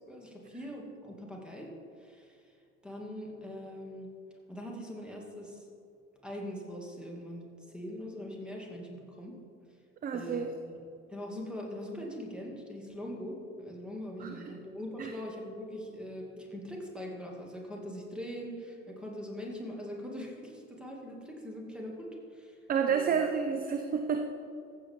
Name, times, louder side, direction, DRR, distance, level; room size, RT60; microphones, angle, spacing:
voice 1, 0.1-1.7 2.0-2.5 2.8-4.1 4.5-5.7 6.2-9.3 10.1-10.8 11.1-22.6 22.9-23.2, equal, ahead, -1 dB, 2.3 m, -42 dB
voice 2, 10.0-10.5 14.2-14.5 15.0-15.1 22.7-24.2, right 6 dB, 25° right, 6 dB, 0.6 m, -30 dB
14.5 x 7.6 x 3.7 m, 2.5 s
figure-of-eight pair, 70°, 38 cm